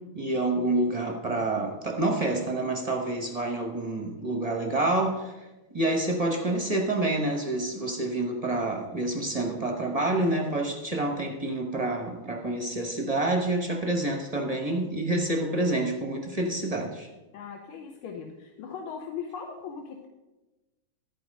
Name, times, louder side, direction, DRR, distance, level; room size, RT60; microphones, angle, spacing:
voice 1, 0.1-5.3 5.7-17.1, right 2 dB, 35° right, 1 dB, 0.6 m, -28 dB
voice 2, 17.3-20.1, left 6 dB, 80° left, 3 dB, 1.7 m, -39 dB
13.5 x 4.8 x 6.4 m, 1.1 s
omnidirectional pair, 2.3 m